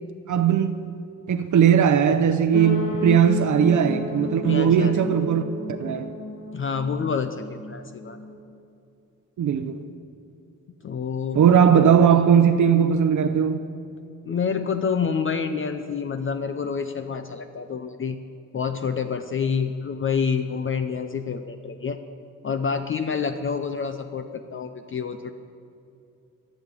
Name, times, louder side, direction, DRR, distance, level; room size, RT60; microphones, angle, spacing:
voice 1, 0.3-0.8 1.3-5.5 5.8-6.1 9.4-9.8 11.3-13.6, right 8 dB, 65° right, 0.7 m, -18 dB
sound 1, 2.5-8.4, left 2 dB, 70° left, 2.4 m, -33 dB
voice 2, 4.4-5.1 6.5-8.2 10.8-11.5 14.2-18.2 18.5-22.0 22.4-25.3, left 6 dB, 40° left, 0.6 m, -28 dB
14.5 x 7.6 x 9.6 m
wide cardioid pair, 150°, 33 cm